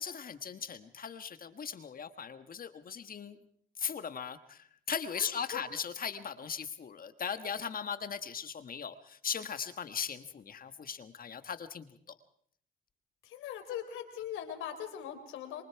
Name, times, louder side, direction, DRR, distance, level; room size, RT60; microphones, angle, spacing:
voice 1, 0.0-3.4 3.8-11.9, left 7 dB, 45° left, 10 dB, 1.5 m, -38 dB
voice 2, 5.1-5.6 13.2-15.6, left 10 dB, 90° left, 6 dB, 3.7 m, -41 dB
27.0 x 23.5 x 4.7 m, 0.64 s
cardioid pair, 90°, 20 cm